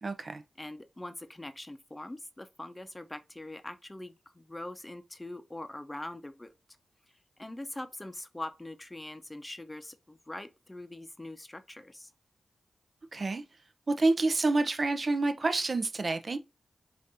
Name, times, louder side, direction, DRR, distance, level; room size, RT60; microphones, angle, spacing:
voice 1, 0.0-0.4 13.1-13.4 13.9-16.4, right 3 dB, 50° right, 0.6 m, -28 dB
voice 2, 0.6-6.5 7.4-12.1, left 1 dB, 20° left, 0.7 m, -43 dB
5.1 x 2.6 x 2.7 m
cardioid pair, 45°, 0 cm